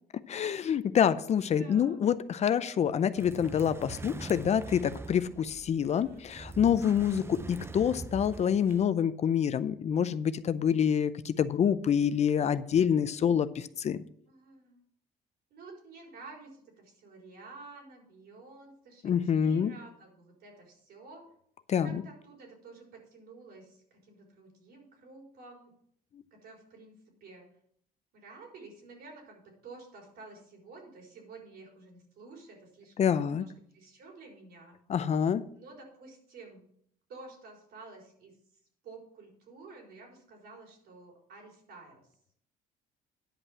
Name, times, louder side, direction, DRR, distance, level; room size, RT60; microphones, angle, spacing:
voice 1, 0.3-14.0 19.0-19.7 21.7-22.0 33.0-33.4 34.9-35.4, left 8 dB, 40° left, 0.5 m, -27 dB
voice 2, 1.6-2.0 5.8-6.3 14.3-14.8 15.5-21.3 21.8-25.7 26.4-26.9 27.2-27.5 28.1-34.8 35.5-36.6 37.1-38.3 38.8-42.0, right 3 dB, 70° right, 4.4 m, -51 dB
sound 1, 3.2-8.9, right 3 dB, 15° right, 0.5 m, -43 dB
10.0 x 5.4 x 7.2 m
cardioid pair, 110°, 17 cm